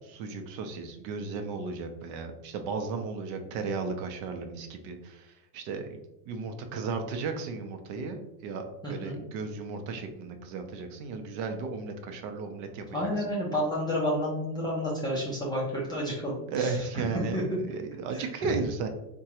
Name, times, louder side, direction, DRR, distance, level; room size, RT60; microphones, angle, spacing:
voice 1, 0.1-6.0 6.3-13.3 16.5-17.4 17.7-18.9, right 4 dB, 60° right, 6 dB, 0.7 m, -35 dB
voice 2, 8.8-9.2 12.9-17.4 18.1-18.5, equal, 10° left, -5 dB, 0.3 m, -31 dB
3.6 x 2.3 x 2.8 m, 0.88 s
supercardioid pair, 110°, 47 cm